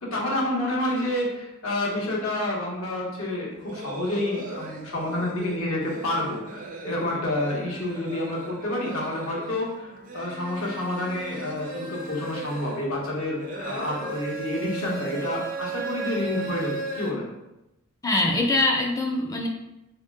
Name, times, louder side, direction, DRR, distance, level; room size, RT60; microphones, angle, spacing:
voice 1, 0.0-17.3, left 1 dB, 85° left, -3 dB, 1.1 m, -29 dB
sound 1, 3.5-17.1, right 3 dB, 40° right, 0.4 m, -37 dB
voice 2, 18.0-19.5, left 2 dB, 15° left, 1 dB, 0.4 m, -23 dB
3.1 x 2.8 x 3.5 m, 0.92 s
head